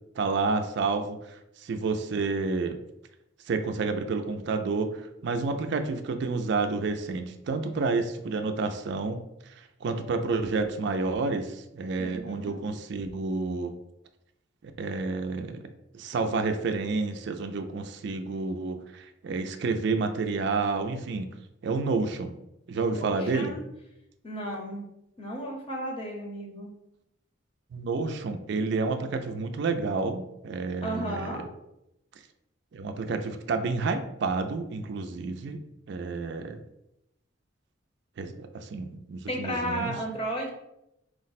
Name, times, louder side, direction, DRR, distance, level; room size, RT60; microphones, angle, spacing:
voice 1, 0.2-2.8 3.5-9.2 9.6-13.7 14.6-15.7 15.9-21.3 21.6-22.3 22.7-23.6 27.7-31.4 32.7-35.6 35.9-36.6 38.2-39.9, right 4 dB, 55° right, 7 dB, 0.3 m, -30 dB
voice 2, 12.0-12.6 22.8-23.6 24.2-24.8 25.2-26.7 30.8-31.4 39.3-40.5, equal, 30° left, 0 dB, 0.7 m, -34 dB
4.6 x 2.1 x 4.0 m, 0.85 s
head